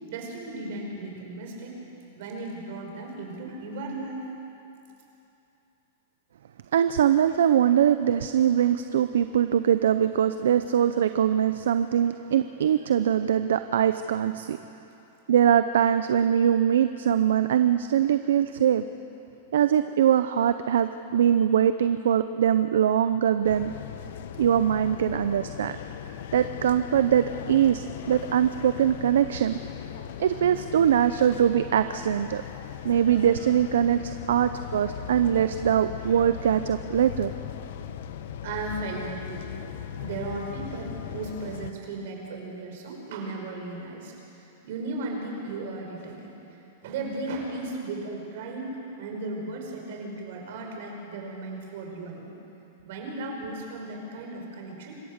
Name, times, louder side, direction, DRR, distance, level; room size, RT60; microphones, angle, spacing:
voice 1, 0.1-1.8 2.2-4.2 26.4-26.9 30.1-30.5 35.2-35.4 38.4-39.5 40.0-44.1 44.4-46.3 46.8-52.3 52.8-54.9, right 2 dB, 60° right, 1 dB, 5.2 m, -36 dB
voice 2, 6.7-14.6 15.3-18.8 19.5-23.7 24.4-25.8 26.3-29.6 30.2-32.4 32.8-34.0 34.3-37.3, right 9 dB, 80° right, 11 dB, 0.6 m, -22 dB
sound 1, 23.4-41.7, left 9 dB, 65° left, 1.1 m, -38 dB
26.5 x 15.0 x 6.7 m, 3.0 s
hypercardioid pair, 140°, 0 cm